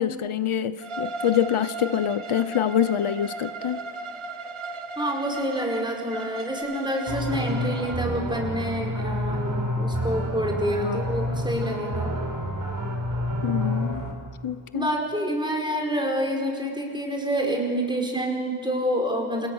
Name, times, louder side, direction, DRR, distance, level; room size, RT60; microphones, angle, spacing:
voice 1, 0.0-3.8 10.8-11.0 13.4-14.0 14.4-14.9, left 9 dB, 85° left, 13 dB, 1.0 m, -25 dB
Bowed string instrument, 0.8-8.0, right 3 dB, 80° right, 1.8 m, -36 dB
voice 2, 5.0-12.1 14.7-19.5, equal, 10° right, 1 dB, 5.2 m, -27 dB
sound 1, 7.1-14.1, equal, 40° right, 4.3 m, -28 dB
29.0 x 28.5 x 6.5 m, 2.3 s
wide cardioid pair, 135°, 49 cm